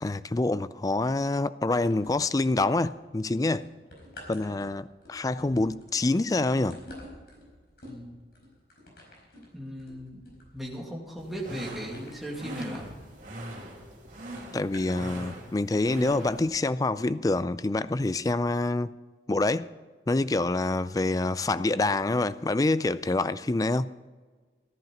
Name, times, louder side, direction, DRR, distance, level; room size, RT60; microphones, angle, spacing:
voice 1, 0.0-3.7 4.3-6.8 14.5-18.9 19.3-19.7 20.1-23.9, left 2 dB, 20° left, 0.3 m, -26 dB
sound 1, 1.9-2.9 3.3-13.6 14.4-15.1 15.8-15.9, left 1 dB, 60° left, 4.9 m, -49 dB
voice 2, 7.8-8.2 9.4-10.2 10.5-13.0, equal, ahead, 2.2 m, -38 dB
sound 2, 11.2-16.6, right 1 dB, 45° right, 2.7 m, -42 dB
15.0 x 10.5 x 5.1 m
head